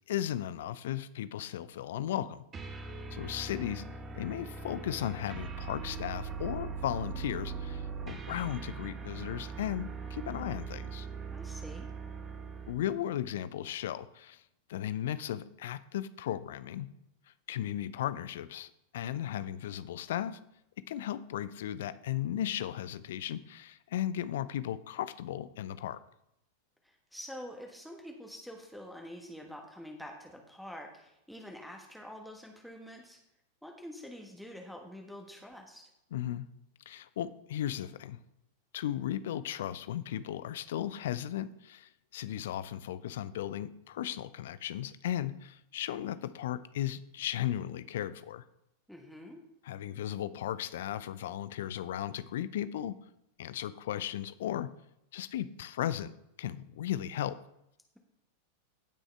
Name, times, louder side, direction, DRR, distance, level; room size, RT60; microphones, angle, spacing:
voice 1, 0.1-2.4 3.1-3.8 4.1-11.1 12.7-14.4 14.7-16.9 17.5-20.4 20.9-26.0 36.1-36.5 36.9-38.2 38.7-48.4 49.7-53.0 53.4-54.7 55.1-56.1 56.4-57.4, left 11 dB, 55° left, 15 dB, 0.5 m, -36 dB
sound 1, 2.5-12.9, right 5 dB, 25° right, 1.2 m, -41 dB
voice 2, 11.3-11.9 26.8-33.2 33.6-35.9 48.9-49.4, equal, ahead, 1 dB, 1.4 m, -46 dB
16.5 x 6.2 x 3.4 m, 0.82 s
figure-of-eight pair, 90°, 0 cm